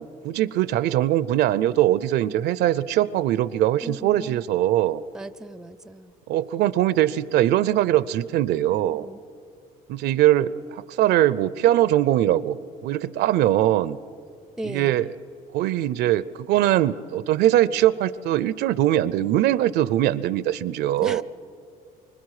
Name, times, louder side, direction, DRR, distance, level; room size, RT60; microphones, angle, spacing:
voice 1, 0.0-5.0 6.3-9.1 9.9-14.0 14.6-15.1 15.5-21.2, right 13 dB, 75° right, 17 dB, 0.5 m, -21 dB
voice 2, 3.8-4.4 5.1-6.2 8.7-9.2 14.6-15.1 21.0-21.2, right 1 dB, 5° right, 14 dB, 0.4 m, -37 dB
25.0 x 25.0 x 4.9 m, 2.4 s
cardioid pair, 110°, 17 cm